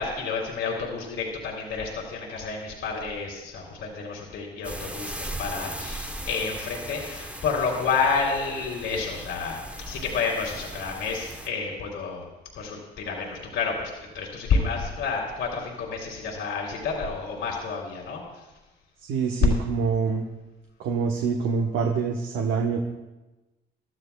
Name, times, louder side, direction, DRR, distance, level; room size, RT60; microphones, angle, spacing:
voice 1, 0.0-12.3 12.5-18.4, left 5 dB, 80° left, -1 dB, 2.8 m, -30 dB
sound 1, 4.6-11.5, right 1 dB, 5° right, 0.9 m, -38 dB
voice 2, 19.0-20.3 20.8-22.8, right 5 dB, 90° right, 2 dB, 1.1 m, -25 dB
24.0 x 13.0 x 2.3 m, 1.1 s
cardioid pair, 90°, 20 cm